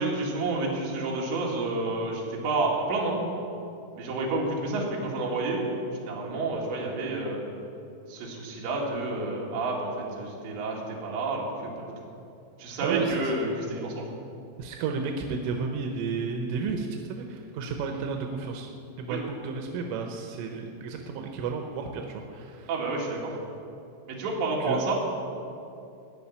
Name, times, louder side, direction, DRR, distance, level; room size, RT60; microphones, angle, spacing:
voice 1, 0.0-3.2 4.0-5.7 6.1-7.4 8.1-11.9 12.6-14.1 19.1-19.2 22.7-23.3 24.1-25.0, right 2 dB, 70° right, -3 dB, 4.3 m, -29 dB
voice 2, 12.8-13.3 14.6-18.7 19.0-22.7 24.6-24.9, right 5 dB, 90° right, 3 dB, 3.5 m, -32 dB
17.0 x 5.8 x 9.7 m, 2.6 s
omnidirectional pair, 5.5 m